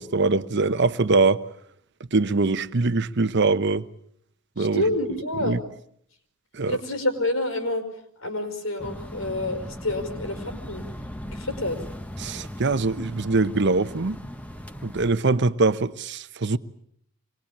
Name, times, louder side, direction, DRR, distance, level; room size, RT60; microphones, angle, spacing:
voice 1, 0.0-1.4 2.1-3.8 4.6-4.9 5.4-5.6 6.5-6.8 12.2-14.2 14.8-16.6, right 3 dB, 55° right, 1.0 m, -23 dB
voice 2, 4.6-5.6 6.7-7.8 8.2-10.8 11.3-11.8, left 2 dB, 85° left, 5.3 m, -28 dB
sound 1, 8.8-15.1, equal, 5° left, 1.3 m, -38 dB
26.0 x 21.0 x 8.7 m
head